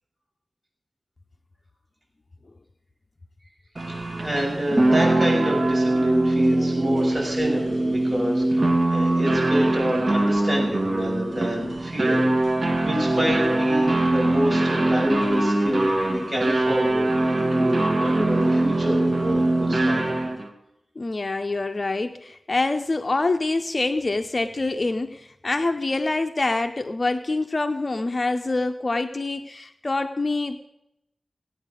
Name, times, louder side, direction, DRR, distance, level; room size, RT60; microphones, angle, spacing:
sound 1, 3.8-20.5, right 2 dB, 45° right, 2.0 m, -22 dB
voice 1, 3.9-12.3 12.8-20.0, equal, 25° right, -2 dB, 6.8 m, -27 dB
voice 2, 4.7-5.1 21.0-30.6, left 2 dB, 45° left, 7 dB, 0.8 m, -26 dB
18.0 x 9.2 x 6.4 m, 0.83 s
wide cardioid pair, 70°, 0 cm